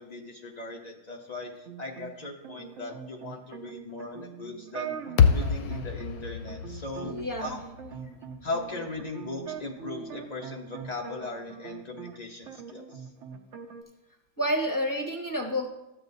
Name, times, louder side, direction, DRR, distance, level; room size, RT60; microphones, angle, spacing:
voice 1, 0.0-5.0 5.3-7.2 7.4-7.6 8.4-13.1, left 2 dB, 85° left, 1 dB, 0.3 m, -38 dB
sound 1, 1.7-12.2 12.5-13.8, right 7 dB, 60° right, 0.8 m, -42 dB
sound 2, 5.2-9.5, left 7 dB, 65° left, 1.0 m, -27 dB
voice 2, 7.0-7.5 14.4-15.7, equal, 15° left, 2 dB, 0.6 m, -29 dB
13.0 x 7.8 x 2.7 m, 1.0 s
omnidirectional pair, 1.9 m